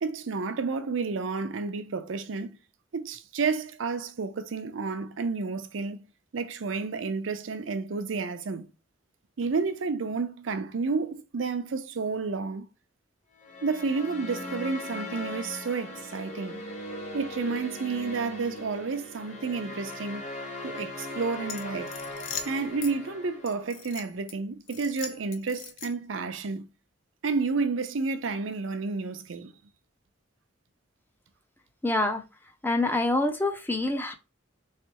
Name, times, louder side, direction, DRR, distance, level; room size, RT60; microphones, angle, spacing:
voice 1, 0.0-2.6 2.9-6.0 6.3-8.7 9.4-12.7 13.6-16.6 17.1-20.2 20.6-21.9 22.4-26.7 27.2-29.5, right 4 dB, 85° right, 0.6 m, -31 dB
sound 1, 13.4-23.8, left 1 dB, 40° left, 1.0 m, -39 dB
sound 2, 21.4-22.9 23.5-24.3 24.7-26.1, left 7 dB, 70° left, 0.8 m, -40 dB
voice 2, 31.8-32.2 32.6-34.1, left 2 dB, 10° left, 0.4 m, -26 dB
3.6 x 3.2 x 3.0 m
head